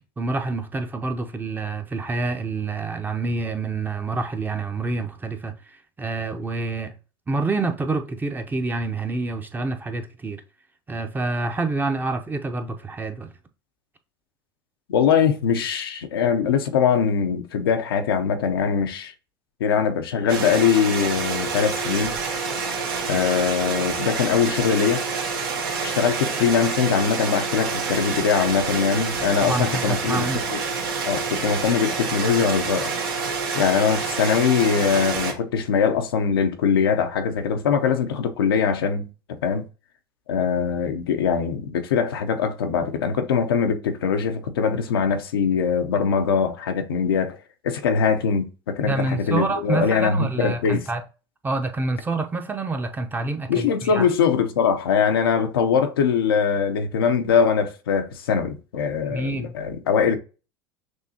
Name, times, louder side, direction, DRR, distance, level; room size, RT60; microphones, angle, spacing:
voice 1, 0.2-6.9 7.3-10.4 10.9-13.3 29.4-30.5 48.8-51.0 51.4-54.1 59.1-59.5, right 3 dB, 15° right, 0.6 m, -27 dB
voice 2, 14.9-19.1 19.6-22.2 23.1-25.0 25.8-30.6 31.1-32.9 33.5-39.7 40.3-47.4 47.6-50.8 53.5-60.2, left 6 dB, 85° left, 0.6 m, -22 dB
sound 1, 20.3-35.3, right 5 dB, 80° right, 1.2 m, -27 dB
6.3 x 2.7 x 2.8 m
hypercardioid pair, 90°, 12 cm